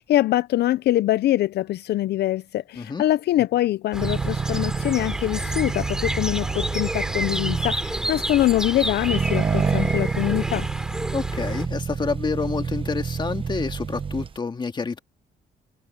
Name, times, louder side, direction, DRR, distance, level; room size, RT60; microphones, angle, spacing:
voice 1, 0.0-10.7, left 14 dB, 70° left, 0.5 m, -23 dB
sound 1, 3.9-11.7, right 1 dB, 5° right, 3.2 m, -30 dB
Accelerating revving vroom, 4.0-14.4, right 6 dB, 30° right, 0.9 m, -28 dB
voice 2, 11.1-15.0, left 4 dB, 25° left, 2.2 m, -28 dB
cardioid pair, 135°, 18 cm